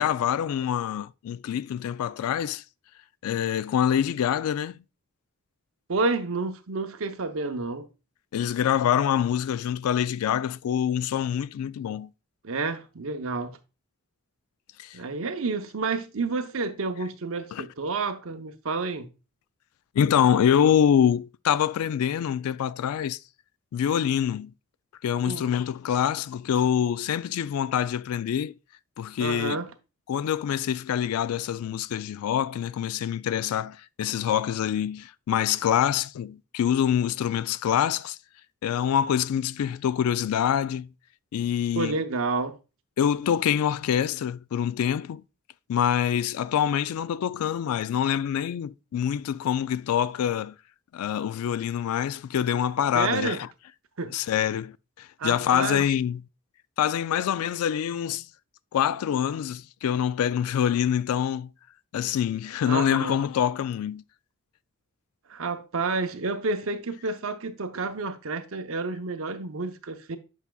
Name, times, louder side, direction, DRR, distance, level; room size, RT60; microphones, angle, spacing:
voice 1, 0.0-2.6 3.2-4.8 8.3-12.1 14.8-15.0 17.5-17.6 19.9-23.2 23.7-24.5 25.0-28.5 29.0-29.6 30.1-38.2 38.6-40.9 41.3-42.0 43.0-45.2 45.7-50.6 50.9-53.5 54.1-56.2 56.8-58.3 58.7-61.5 61.9-64.0, left 9 dB, 80° left, 0.3 m, -25 dB
voice 2, 5.9-7.9 12.4-13.6 14.9-19.1 25.3-25.5 29.2-29.7 41.7-42.6 52.9-53.4 54.0-54.1 55.2-55.8 62.7-63.2 65.3-70.2, right 3 dB, 65° right, 0.7 m, -30 dB
8.2 x 5.7 x 2.3 m
head